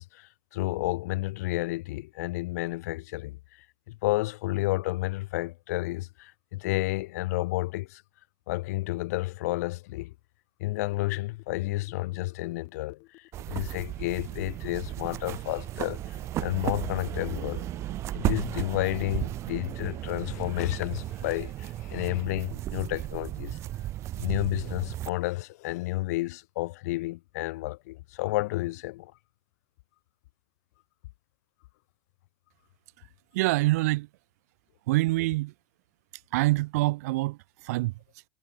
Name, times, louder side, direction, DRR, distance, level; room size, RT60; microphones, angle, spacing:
voice 1, 0.0-8.0 8.5-10.1 10.6-17.7 18.1-23.6 24.2-29.1, left 19 dB, 65° left, 2.5 m, -31 dB
sound 1, 10.7-20.1, left 23 dB, 45° left, 4.5 m, -55 dB
sound 2, 13.3-25.1, right 14 dB, 30° right, 1.3 m, -35 dB
voice 2, 33.3-34.1 34.9-35.5 36.1-38.3, right 20 dB, 65° right, 0.9 m, -26 dB
supercardioid pair, 160°, 9 cm